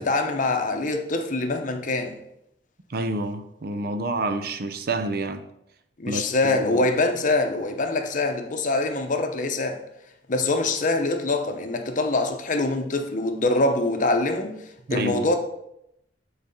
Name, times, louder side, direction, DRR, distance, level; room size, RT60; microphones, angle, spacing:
voice 1, 0.0-2.2 6.0-9.8 10.3-14.6 14.9-15.4, left 2 dB, 45° left, 0.8 m, -24 dB
voice 2, 2.9-5.4 6.1-6.9 14.9-15.3, right 2 dB, 55° right, 0.6 m, -29 dB
7.9 x 4.1 x 5.3 m
head